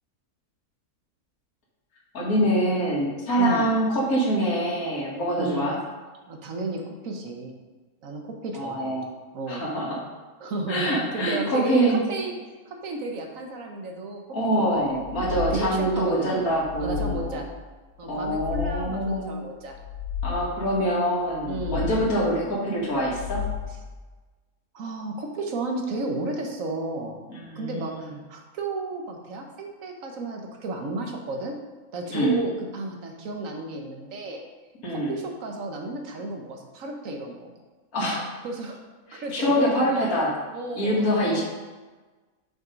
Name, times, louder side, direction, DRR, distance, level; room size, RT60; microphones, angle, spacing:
voice 1, 2.1-5.8 8.5-9.1 9.5-10.0 10.7-12.0 14.3-17.4 18.1-19.3 20.2-23.4 27.3-28.0 32.1-32.3 34.8-35.1 37.9-38.2 39.1-40.3 40.8-41.4, right 1 dB, 75° left, -6 dB, 2.3 m, -25 dB
voice 2, 3.4-3.7 5.4-5.7 6.3-7.5 8.0-9.0 9.3-9.7 10.4-11.8 12.1-12.3 12.7-14.2 14.6-16.5 16.8-17.5 18.0-19.8 21.5-21.9 24.7-27.2 27.6-31.6 31.9-34.4 34.9-37.5 38.4-38.8 39.1-40.0 40.5-41.4, right 2 dB, 65° right, 3 dB, 1.4 m, -33 dB
sound 1, 14.9-16.0 16.4-17.6 18.0-19.1 19.6-20.7 21.2-22.3 22.9-24.0, left 8 dB, 35° left, 1.9 m, -34 dB
6.6 x 5.5 x 5.2 m, 1.3 s
omnidirectional pair, 1.6 m